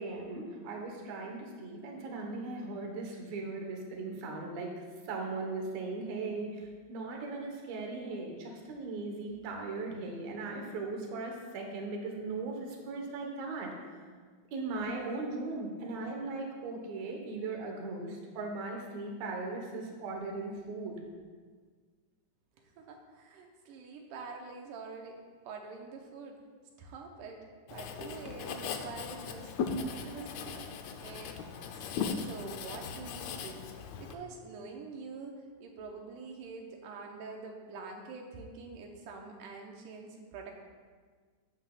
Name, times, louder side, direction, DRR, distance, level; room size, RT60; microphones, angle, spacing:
voice 1, 0.0-4.7 5.0-13.7 14.5-21.0, right 3 dB, 65° right, 1 dB, 2.4 m, -38 dB
voice 2, 22.8-25.2 25.5-26.4 26.8-27.4 27.7-29.5 30.0-31.3 32.1-33.6 34.0-40.6, right 4 dB, 90° right, 2 dB, 2.5 m, -45 dB
Writing, 27.7-34.1, left 5 dB, 85° left, 1.5 m, -38 dB
11.0 x 8.3 x 2.4 m, 1.5 s
omnidirectional pair, 3.6 m